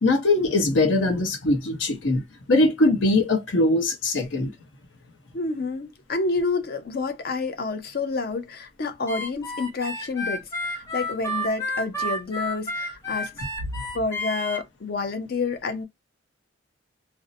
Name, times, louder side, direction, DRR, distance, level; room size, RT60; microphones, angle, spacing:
voice 1, 0.0-2.2 2.5-4.5, left 2 dB, 75° left, 0.9 m, -21 dB
voice 2, 5.3-13.4 13.9-15.8, left 3 dB, 50° left, 0.5 m, -29 dB
Harmonica, 9.1-14.6, left 1 dB, 15° left, 0.8 m, -31 dB
2.6 x 2.1 x 2.6 m
head